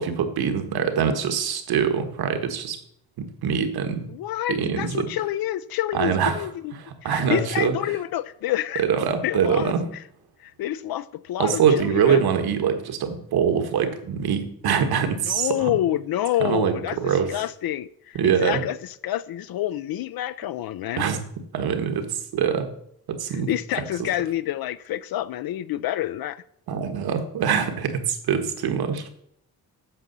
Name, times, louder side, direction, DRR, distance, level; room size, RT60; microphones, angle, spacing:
voice 1, 0.0-2.8 3.2-4.1 4.5-5.1 5.9-6.5 6.8-7.7 8.8-9.9 11.4-15.7 16.4-17.3 18.1-18.6 21.0-21.2 21.5-22.7 23.1-23.5 26.7-29.2, right 7 dB, 75° right, 1.6 m, -24 dB
voice 2, 4.1-6.6 7.0-8.8 9.2-10.0 10.4-12.2 15.3-21.1 23.3-26.4, left 13 dB, 70° left, 0.5 m, -28 dB
8.7 x 7.3 x 6.8 m
wide cardioid pair, 155°, 38 cm